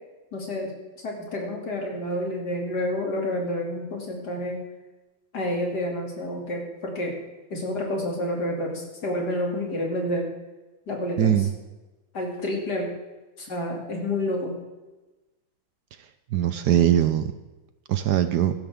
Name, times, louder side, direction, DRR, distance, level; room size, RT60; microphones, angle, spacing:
voice 1, 0.3-0.7 1.0-4.6 5.3-7.1 7.5-10.3 10.9-11.4 12.1-12.9 13.4-14.5, left 1 dB, 55° left, 0 dB, 3.3 m, -29 dB
voice 2, 11.2-11.5 16.3-17.3 17.9-18.5, right 10 dB, 65° right, 10 dB, 1.1 m, -21 dB
16.0 x 12.0 x 3.7 m, 1.1 s
omnidirectional pair, 2.2 m